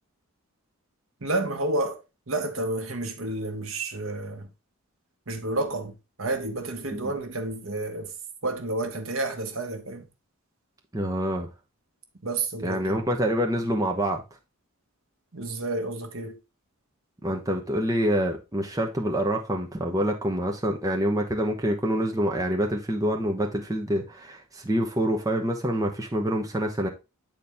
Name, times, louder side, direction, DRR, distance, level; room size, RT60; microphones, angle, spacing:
voice 1, 1.2-2.0 2.3-4.5 5.3-8.1 8.4-10.0 12.2-13.0 15.3-16.4, right 2 dB, 65° right, 1.2 m, -30 dB
voice 2, 10.9-11.5 12.6-14.2 17.2-26.9, equal, 15° right, 0.9 m, -26 dB
8.2 x 4.3 x 3.5 m
head